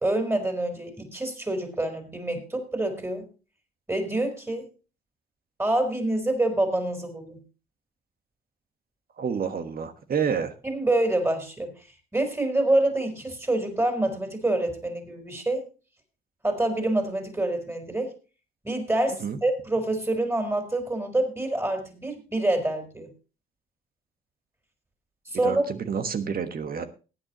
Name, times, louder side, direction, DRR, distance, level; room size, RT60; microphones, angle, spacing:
voice 1, 0.0-3.3 3.9-4.6 5.6-7.4 10.6-11.7 12.1-15.6 16.4-18.1 18.6-23.1 25.3-25.6, right 1 dB, 10° right, 5 dB, 4.1 m, -26 dB
voice 2, 9.2-10.5 19.2-19.4 25.4-26.9, right 6 dB, 50° right, 9 dB, 1.4 m, -29 dB
18.5 x 9.3 x 3.0 m, 0.32 s
cardioid pair, 90°, 20 cm